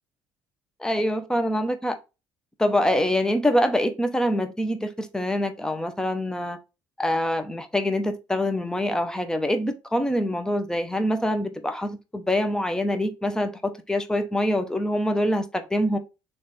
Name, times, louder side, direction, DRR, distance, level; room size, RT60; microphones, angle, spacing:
voice 1, 0.8-2.0 2.6-6.6 7.0-16.0, left 1 dB, 10° left, 0.8 m, -25 dB
3.3 x 3.2 x 4.1 m
supercardioid pair, 85°, 8 cm